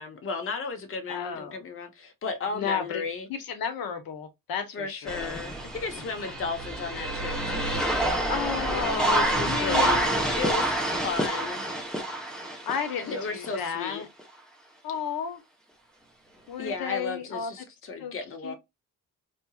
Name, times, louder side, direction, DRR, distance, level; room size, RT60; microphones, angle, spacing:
voice 1, 0.0-3.3 4.7-7.9 8.6-10.0 10.4-11.7 13.0-14.0 16.6-18.5, left 4 dB, 35° left, 0.9 m, -34 dB
voice 2, 1.1-1.6 2.5-3.0 3.3-5.4 6.2-6.3 8.2-10.6 12.6-14.1 14.8-15.4 16.5-17.5 18.0-18.1 18.4-18.5, left 7 dB, 75° left, 1.0 m, -33 dB
sound 1, 5.1-13.7 14.2-14.3 16.7-16.8, right 1 dB, ahead, 0.9 m, -28 dB
4.3 x 2.8 x 2.3 m
cardioid pair, 155°, 36 cm